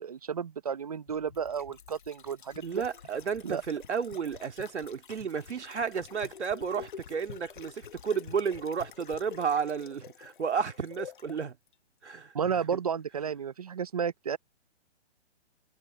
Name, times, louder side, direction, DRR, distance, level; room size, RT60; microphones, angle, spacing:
voice 1, 0.0-2.8 3.4-3.6 12.3-14.4, right 7 dB, 35° right, 0.6 m, -32 dB
sound 1, 1.1-11.4 11.7-11.8, left 8 dB, 45° left, 1.1 m, -48 dB
voice 2, 2.6-11.6 12.0-12.3, right 6 dB, 85° right, 2.8 m, -32 dB
hypercardioid pair, 175°, 34 cm